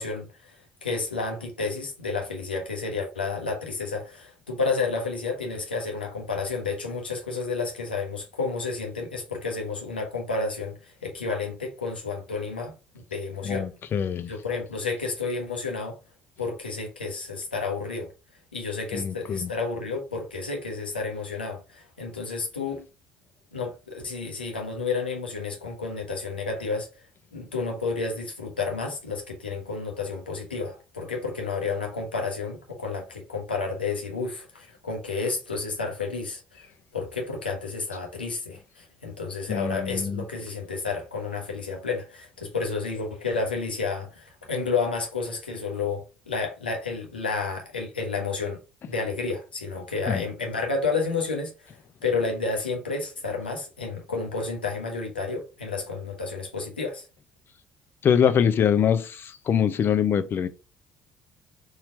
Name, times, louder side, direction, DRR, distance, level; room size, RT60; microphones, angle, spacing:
voice 1, 0.0-12.7 13.1-13.7 14.3-16.0 16.4-18.1 18.5-22.9 23.5-27.0 27.3-36.7 36.9-48.6 48.9-57.1, left 4 dB, 90° left, 1.1 m, -31 dB
voice 2, 13.4-14.3 18.9-19.5 39.5-40.2 50.1-50.2 58.0-60.5, left 8 dB, 45° left, 0.6 m, -24 dB
4.4 x 2.9 x 3.8 m
figure-of-eight pair, 55°, 5 cm